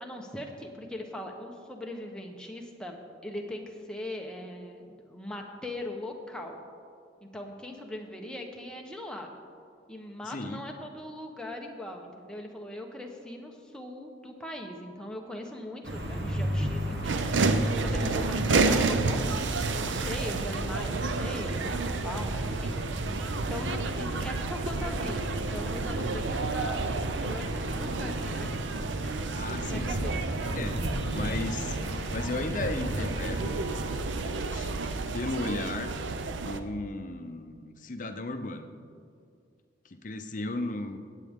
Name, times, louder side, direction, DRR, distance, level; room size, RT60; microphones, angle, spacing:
voice 1, 0.0-3.0 3.2-6.6 7.2-9.3 9.9-26.8 27.1-28.5 29.0-29.4 29.7-30.2, left 1 dB, 5° left, 1 dB, 0.9 m, -40 dB
voice 2, 10.2-10.6 26.1-26.2 29.3-30.1 30.5-30.8 31.1-31.8 32.1-33.6 34.2-34.7 35.1-35.9 36.3-38.7 39.8-41.0, left 2 dB, 45° left, 7 dB, 0.7 m, -35 dB
sound 1, 15.8-34.0, equal, 65° right, 1.2 m, -35 dB
sound 2, 17.0-36.6, right 3 dB, 80° right, 0.6 m, -31 dB
17.0 x 8.4 x 3.6 m, 2.3 s
head